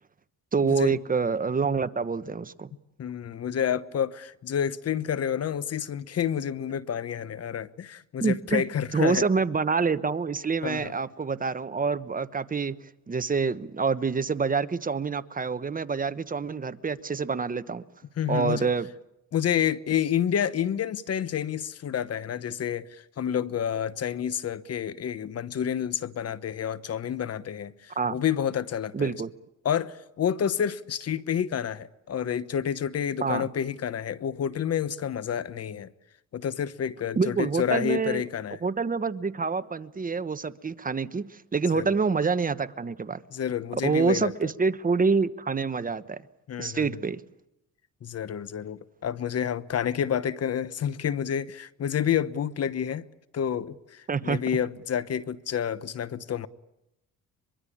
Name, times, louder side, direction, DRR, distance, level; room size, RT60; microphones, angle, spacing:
voice 1, 0.5-2.7 8.2-8.6 8.9-12.8 13.1-17.8 18.3-18.9 28.0-28.2 28.9-29.3 33.2-33.5 37.2-38.2 38.6-43.2 43.8-46.2 46.6-47.2 54.1-54.4, right 5 dB, 30° right, 1.1 m, -27 dB
voice 2, 3.0-9.2 10.6-11.0 18.2-18.7 19.3-29.2 29.6-35.9 36.3-38.6 41.6-42.0 43.3-44.5 46.5-46.9 48.0-53.0 53.3-56.5, left 9 dB, 55° left, 1.1 m, -29 dB
23.5 x 23.0 x 8.7 m
cardioid pair, 90°, 30 cm